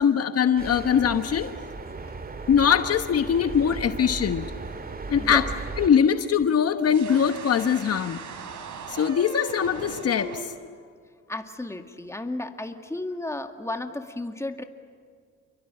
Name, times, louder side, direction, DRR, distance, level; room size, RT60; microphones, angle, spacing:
voice 1, 0.0-1.5 2.5-4.5 5.1-5.5 5.8-8.2 8.9-10.5, left 8 dB, 55° left, 9 dB, 1.2 m, -22 dB
sound 1, 0.6-5.9, right 3 dB, 30° right, 2.0 m, -36 dB
sound 2, 6.8-10.4, right 4 dB, 75° right, 3.5 m, -39 dB
voice 2, 11.3-14.6, left 2 dB, 10° left, 6 dB, 2.1 m, -33 dB
29.0 x 23.0 x 8.9 m, 2.1 s
cardioid pair, 90°, 30 cm